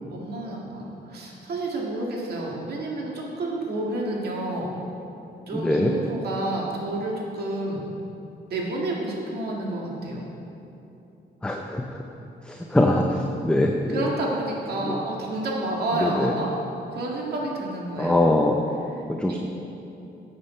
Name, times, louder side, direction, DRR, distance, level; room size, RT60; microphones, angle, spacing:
voice 1, 0.1-4.7 5.5-7.8 8.5-10.2 13.9-16.5 16.9-18.2 19.3-19.4, right 2 dB, 60° right, -2 dB, 2.1 m, -29 dB
voice 2, 5.5-5.9 11.4-11.8 12.5-13.0 13.4-14.0 14.9-15.0 16.0-16.3 18.0-18.6 19.1-19.4, left 1 dB, 5° left, 2 dB, 0.5 m, -22 dB
12.0 x 7.4 x 4.4 m, 2.9 s
cardioid pair, 125°, 18 cm